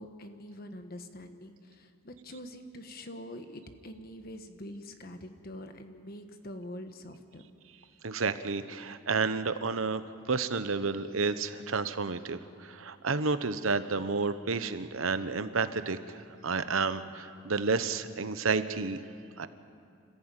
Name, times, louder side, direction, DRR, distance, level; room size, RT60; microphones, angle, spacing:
voice 1, 0.0-7.4, left 1 dB, 45° left, 7 dB, 1.3 m, -45 dB
voice 2, 8.0-19.0 19.4-19.5, right 4 dB, 80° right, 12 dB, 1.0 m, -31 dB
27.5 x 15.0 x 9.0 m, 2.5 s
head